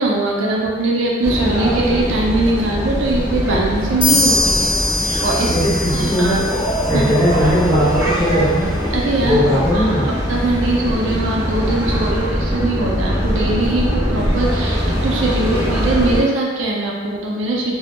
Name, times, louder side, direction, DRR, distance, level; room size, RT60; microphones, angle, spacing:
voice 1, 0.0-4.7 5.2-5.5 5.9-6.4 6.9-7.1 8.9-9.4 9.7-9.9 10.3-17.8, right 2 dB, 85° right, -2 dB, 0.4 m, -21 dB
sound 1, 1.2-16.2, equal, 10° right, 0.4 m, -22 dB
sound 2, 4.0-7.6, left 2 dB, 85° left, 0.5 m, -22 dB
voice 2, 5.4-6.4 6.9-8.7 9.2-10.1, equal, 10° left, -12 dB, 0.9 m, -18 dB
2.1 x 2.1 x 2.9 m, 1.4 s
head